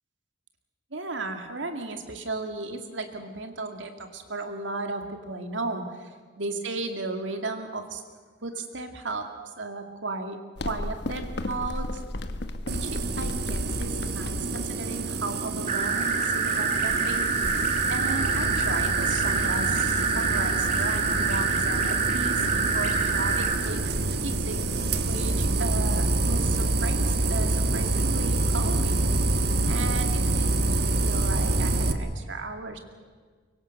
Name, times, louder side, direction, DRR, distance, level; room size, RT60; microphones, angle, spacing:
voice 1, 0.9-6.1 6.4-8.0 8.4-9.3 9.6-10.4 10.7-12.0 12.7-17.5 17.9-23.8 24.2-29.1 29.7-32.8, right 3 dB, 75° right, 5 dB, 2.5 m, -35 dB
sound 1, 10.6-15.6, left 1 dB, 60° left, 1.3 m, -34 dB
sound 2, 12.7-31.9, right 2 dB, 55° right, 1.5 m, -27 dB
sound 3, 15.7-23.6, right 4 dB, 40° right, 2.8 m, -26 dB
24.0 x 23.5 x 6.7 m, 1.5 s
head